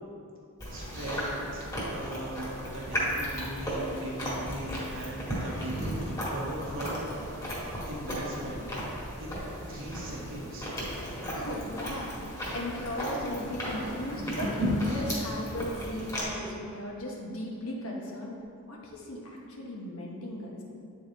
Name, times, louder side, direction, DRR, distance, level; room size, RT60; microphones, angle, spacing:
Chewing mastication, 0.6-16.2, equal, 15° left, 1.6 m, -34 dB
voice 1, 0.7-2.5 2.7-8.6 9.2-9.3 9.7-10.7, right 1 dB, 60° right, -4 dB, 1.3 m, -39 dB
voice 2, 11.3-18.4 18.7-20.6, left 1 dB, 65° left, -2 dB, 1.1 m, -37 dB
8.9 x 4.0 x 3.9 m, 2.5 s
head